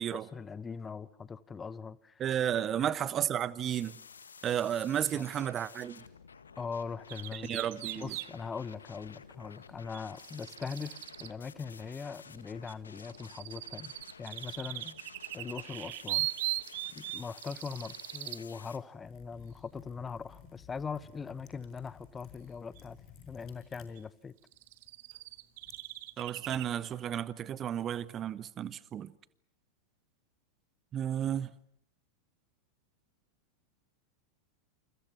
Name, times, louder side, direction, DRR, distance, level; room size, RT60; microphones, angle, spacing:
voice 1, 0.1-2.2 2.8-3.0 5.1-5.4 6.6-7.6 8.0-13.9 14.2-15.0 15.3-16.3 16.9-23.0 23.3-24.3, left 5 dB, 15° left, 1.0 m, -41 dB
voice 2, 2.2-4.0 4.4-6.0 7.3-8.1 26.2-29.1 30.9-31.5, right 10 dB, 30° right, 1.1 m, -33 dB
sound 1, 3.6-18.8, left 6 dB, 70° left, 1.7 m, -53 dB
sound 2, 7.1-8.3 9.9-11.3 12.7-18.4 22.8-22.9 24.0-24.1 24.5-26.7, right 19 dB, 50° right, 1.0 m, -39 dB
Liquid, 19.0-27.3, left 8 dB, 35° left, 5.3 m, -57 dB
29.0 x 28.5 x 6.0 m
figure-of-eight pair, 90°, 0 cm